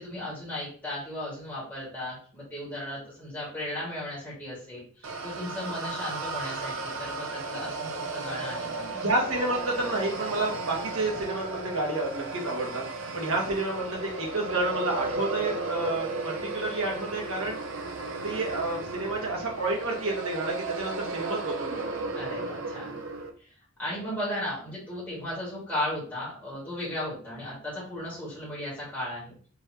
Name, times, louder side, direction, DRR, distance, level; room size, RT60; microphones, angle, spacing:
voice 1, 0.0-8.9 22.1-23.0 23.4-23.5 23.8-29.3, left 1 dB, 10° left, -9 dB, 1.8 m, -36 dB
sound 1, 5.0-23.3, right 3 dB, 55° right, 0.6 m, -35 dB
voice 2, 8.9-12.9 13.1-17.6 18.2-22.2, right 2 dB, 75° right, -2 dB, 1.6 m, -30 dB
4.6 x 3.3 x 2.8 m, 0.43 s
head